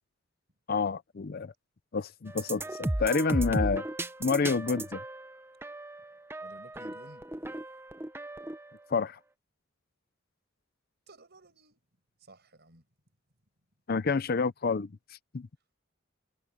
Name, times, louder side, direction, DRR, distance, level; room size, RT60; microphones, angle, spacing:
voice 1, 0.7-1.5 1.9-3.8 4.2-5.0 8.9-9.2 13.9-14.9 15.3-15.5, left 4 dB, 50° left, 0.6 m, -28 dB
sound 1, 2.3-8.7, right 1 dB, 10° right, 0.7 m, -35 dB
voice 2, 6.4-7.2 11.1-11.8 12.2-12.9, right 1 dB, 55° right, 7.1 m, -54 dB
head